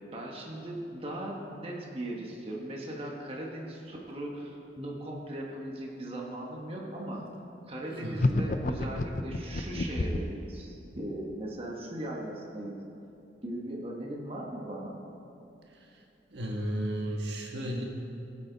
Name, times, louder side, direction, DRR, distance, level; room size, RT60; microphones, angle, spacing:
voice 1, 0.1-7.2 7.7-12.8 13.4-15.0, right 1 dB, 30° right, -2 dB, 1.4 m, -38 dB
voice 2, 7.9-8.4 15.8-15.9 16.3-17.8, right 1 dB, 70° right, 0 dB, 1.5 m, -34 dB
sound 1, 8.2-10.4, left 2 dB, 45° left, 0.6 m, -29 dB
19.5 x 8.4 x 4.0 m, 2.8 s
head